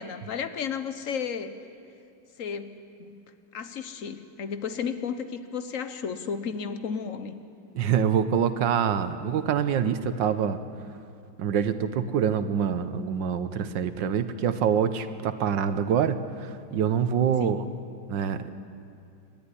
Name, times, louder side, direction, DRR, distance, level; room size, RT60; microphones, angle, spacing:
voice 1, 0.0-1.5 2.4-3.2 3.5-7.3 17.4-17.7, left 6 dB, 50° left, 10 dB, 1.3 m, -33 dB
voice 2, 7.7-10.6 11.4-17.6 18.1-18.5, right 8 dB, 85° right, 11 dB, 1.6 m, -25 dB
29.5 x 12.5 x 10.0 m, 2.5 s
omnidirectional pair, 1.9 m